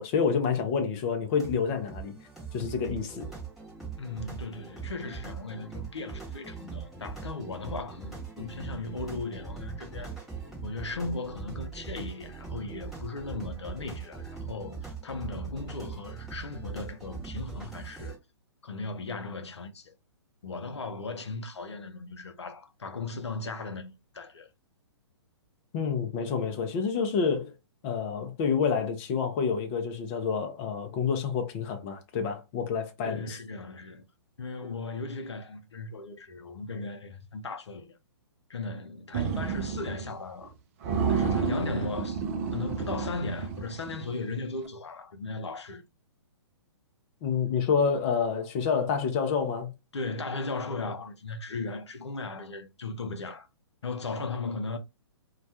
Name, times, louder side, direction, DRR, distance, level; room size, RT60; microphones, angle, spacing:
voice 1, 0.0-2.1 2.5-3.3 25.7-27.5 27.8-33.4 47.2-49.7, left 6 dB, 25° left, 0.5 m, -28 dB
sound 1, 1.3-18.2, right 5 dB, ahead, 0.9 m, -41 dB
voice 2, 4.0-10.2 10.6-18.2 18.6-19.9 20.4-24.5 33.0-34.0 34.4-37.9 38.5-40.5 41.1-42.2 42.5-45.8 49.9-53.5 53.8-54.8, left 3 dB, 75° left, 0.5 m, -37 dB
sound 2, 39.1-40.1 40.4-40.5 40.8-44.2, right 6 dB, 30° right, 0.4 m, -30 dB
2.2 x 2.1 x 2.7 m
figure-of-eight pair, 125°, 14 cm